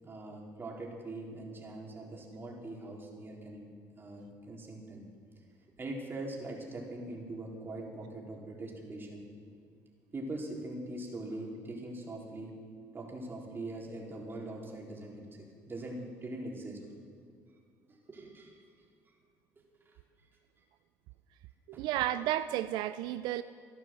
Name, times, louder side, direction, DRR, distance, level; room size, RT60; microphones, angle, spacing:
voice 1, 0.0-3.7 4.0-5.0 5.8-9.3 10.1-12.6 12.9-16.8 17.9-18.6 19.8-20.0 21.7-21.8, right 2 dB, 30° right, -1 dB, 3.8 m, -42 dB
voice 2, 21.8-23.4, right 13 dB, 85° right, 12 dB, 0.4 m, -32 dB
15.0 x 11.0 x 7.5 m, 2.2 s
cardioid pair, 90°, 7 cm